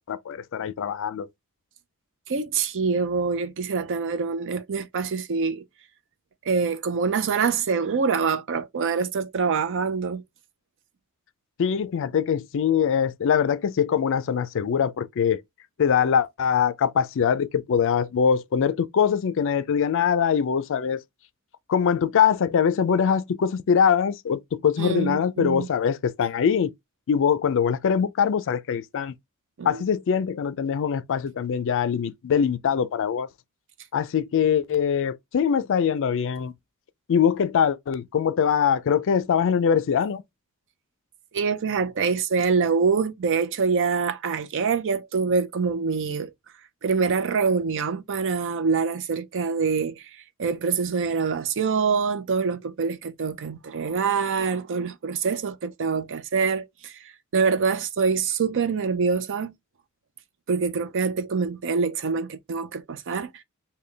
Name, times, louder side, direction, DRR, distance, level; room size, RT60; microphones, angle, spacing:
voice 1, 0.1-1.3 11.6-15.4 15.8-21.0 21.7-26.7 27.1-29.1 29.6-33.3 33.9-36.5 37.1-40.2, left 7 dB, 60° left, 0.4 m, -23 dB
voice 2, 2.3-5.6 6.4-10.2 24.8-25.7 29.6-29.8 41.3-46.3 46.8-59.5 60.5-63.4, right 5 dB, 60° right, 0.5 m, -25 dB
3.3 x 2.2 x 3.7 m
head